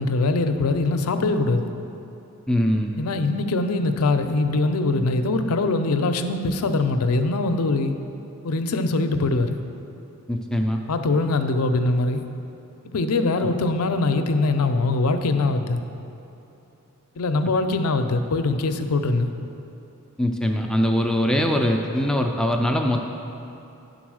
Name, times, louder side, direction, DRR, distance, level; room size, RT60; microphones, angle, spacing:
voice 1, 0.0-1.7 3.0-7.9 8.4-9.6 10.9-12.2 12.9-15.8 17.2-19.3, left 3 dB, 80° left, 7 dB, 0.5 m, -22 dB
voice 2, 2.5-3.0 10.3-10.8 13.4-13.5 20.2-23.1, equal, 5° left, 2 dB, 0.3 m, -22 dB
10.0 x 3.9 x 6.2 m, 2.9 s
head